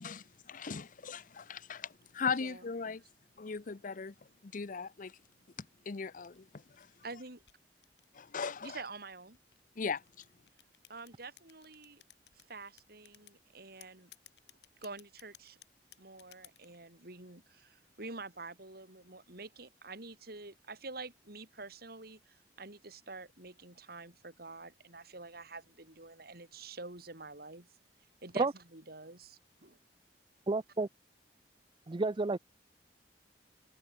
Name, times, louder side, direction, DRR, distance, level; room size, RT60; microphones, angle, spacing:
voice 1, 0.0-3.0 3.4-4.1 4.4-5.2 5.9-6.9 8.1-8.8 9.8-10.0, left 5 dB, 50° left, 0.7 m, -38 dB
sound 1, 6.2-8.7 9.3-12.5 12.8-13.4 13.8-16.8, left 13 dB, 70° left, 5.6 m, -58 dB
voice 2, 7.0-7.4 8.6-9.4 10.9-12.0 12.5-14.1 14.8-15.6 16.0-27.7 28.2-28.5 28.7-29.8, right 3 dB, 60° right, 5.6 m, -47 dB
voice 3, 30.5-30.9 31.9-32.4, right 3 dB, 30° right, 0.5 m, -30 dB
head